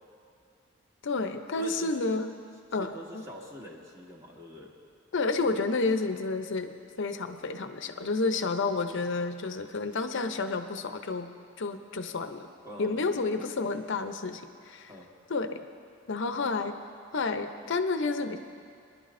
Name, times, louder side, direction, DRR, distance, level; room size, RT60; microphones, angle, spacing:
voice 1, 1.0-2.3 2.7-3.2 5.1-11.3 11.6-12.5 12.8-14.9 15.3-15.6 16.1-16.7 17.1-18.4, left 3 dB, 60° left, 8 dB, 0.7 m, -30 dB
voice 2, 1.5-1.9 2.8-4.7 12.6-13.1 14.9-15.1, left 1 dB, 15° right, -1 dB, 1.5 m, -44 dB
24.0 x 11.0 x 2.6 m, 2.4 s
head